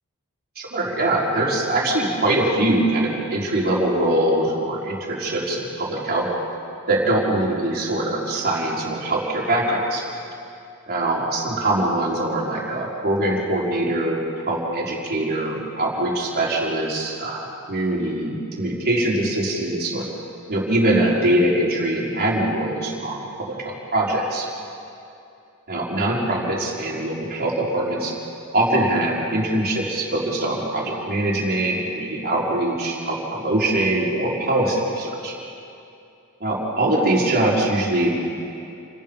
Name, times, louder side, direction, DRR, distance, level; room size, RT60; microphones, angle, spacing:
voice 1, 0.6-6.3 6.9-10.0 10.9-14.2 14.5-20.0 20.5-23.5 23.9-24.5 25.7-28.1 28.5-35.3 36.4-38.1, right 1 dB, 45° right, -3 dB, 4.4 m, -22 dB
29.0 x 20.0 x 5.4 m, 2.6 s
head